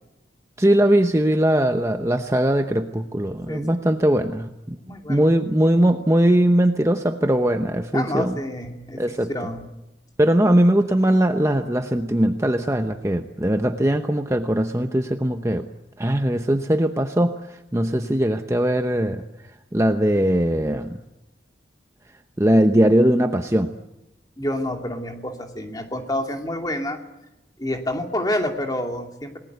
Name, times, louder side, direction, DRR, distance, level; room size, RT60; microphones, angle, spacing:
voice 1, 0.6-4.8 5.1-8.4 9.0-9.3 10.2-15.7 16.0-19.2 19.7-21.0 22.4-23.7, right 1 dB, 15° right, 6 dB, 0.9 m, -20 dB
voice 2, 4.8-5.3 7.9-9.0 9.3-9.7 24.4-27.0 27.6-29.4, left 1 dB, 20° left, 3 dB, 2.6 m, -28 dB
28.0 x 19.5 x 8.1 m, 0.95 s
head